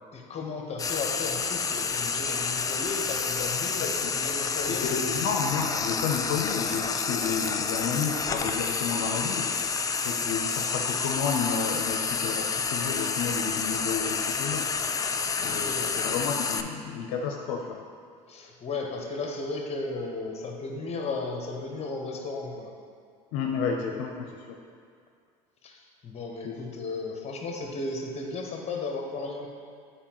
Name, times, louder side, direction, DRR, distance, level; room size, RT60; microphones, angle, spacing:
voice 1, 0.1-5.2 15.4-16.1 18.3-22.7 25.6-29.5, left 3 dB, 35° left, 1 dB, 1.1 m, -35 dB
Frying (food), 0.8-16.6, left 5 dB, 20° left, 0.3 m, -29 dB
voice 2, 4.7-9.5 10.0-14.7 15.4-17.8 23.3-24.6 26.4-26.8, left 6 dB, 70° left, 1 dB, 0.6 m, -31 dB
8.7 x 4.4 x 3.0 m, 2.1 s
hypercardioid pair, 85°, 18 cm